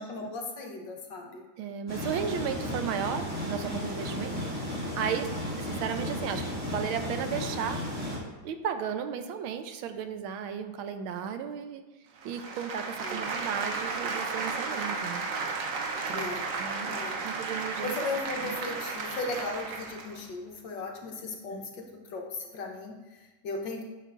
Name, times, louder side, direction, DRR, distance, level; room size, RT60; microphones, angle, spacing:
voice 1, 0.0-1.4 13.0-13.4 16.1-16.6 16.8-17.3 17.8-23.8, left 3 dB, 65° left, 1 dB, 1.6 m, -37 dB
voice 2, 1.6-5.3 5.6-7.8 8.4-11.8 12.2-15.3 16.1-16.9 17.2-17.9 18.4-18.6 21.5-21.7, right 8 dB, 85° right, 8 dB, 1.5 m, -35 dB
sound 1, 1.9-8.2, equal, 10° right, 1.8 m, -34 dB
sound 2, 12.2-20.2, right 4 dB, 60° right, 0.9 m, -34 dB
10.0 x 6.8 x 2.5 m, 1.2 s
omnidirectional pair, 2.2 m